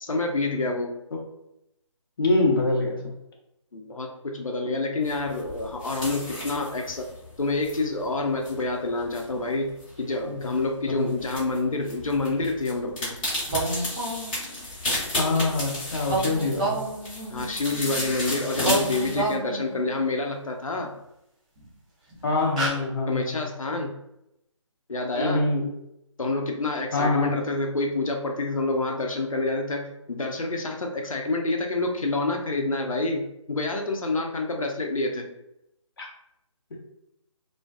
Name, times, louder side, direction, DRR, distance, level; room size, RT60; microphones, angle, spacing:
voice 1, 0.0-0.9 3.7-7.1 7.4-9.7 10.0-13.2 17.3-20.9 23.1-24.0 24.9-25.5 26.2-35.3, left 2 dB, 90° left, 2 dB, 0.5 m, -28 dB
voice 2, 2.2-3.0 10.3-10.4 10.9-11.1 15.2-16.8 22.2-23.4 25.2-25.7 26.9-27.3 36.0-36.1, left 2 dB, 45° left, 0 dB, 0.6 m, -24 dB
sound 1, 5.0-19.3, left 1 dB, 15° left, 1.0 m, -34 dB
sound 2, 13.5-14.6 16.1-18.1 18.5-20.0 21.6-21.7 22.1-22.2 22.5-22.7, right 2 dB, 15° right, 0.4 m, -29 dB
2.4 x 2.3 x 2.3 m, 0.83 s
figure-of-eight pair, 150°, 17 cm